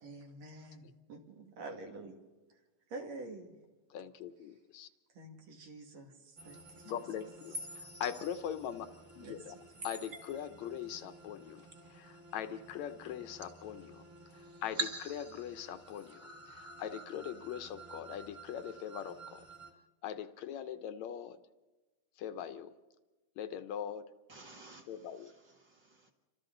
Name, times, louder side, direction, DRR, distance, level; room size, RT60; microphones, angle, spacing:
voice 1, 0.0-2.2 2.9-3.5 5.1-7.0 7.5-7.7 9.2-9.9, right 2 dB, 65° right, 2 dB, 3.6 m, -48 dB
voice 2, 3.9-4.9 6.9-8.9 9.2-9.6 9.8-11.6 11.9-14.0 14.6-16.2 16.5-19.4 20.0-21.4 22.2-22.7 23.4-24.1 24.9-25.3, left 9 dB, 75° left, 11 dB, 2.2 m, -41 dB
sound 1, 6.4-19.7, right 1 dB, 25° right, 2.1 m, -47 dB
voice 3, 24.3-26.1, right 2 dB, 50° right, 4 dB, 1.7 m, -56 dB
30.0 x 25.5 x 3.9 m, 1.2 s
omnidirectional pair, 3.3 m